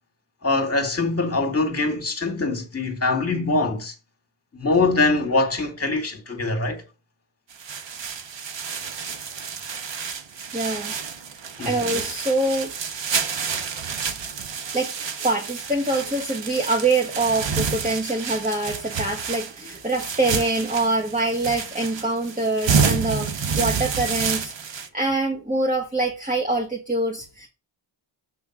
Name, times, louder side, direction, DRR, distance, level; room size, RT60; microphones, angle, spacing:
voice 1, 0.4-3.9 4.5-6.8 11.6-11.8, left 3 dB, 30° left, 2.2 m, -23 dB
sound 1, 7.5-24.9, right 6 dB, 60° right, 1.2 m, -29 dB
voice 2, 10.5-10.9 11.6-12.7 14.7-14.9 15.2-27.5, right 2 dB, 15° right, 1.5 m, -25 dB
8.0 x 3.5 x 6.1 m
cardioid pair, 60°, 50 cm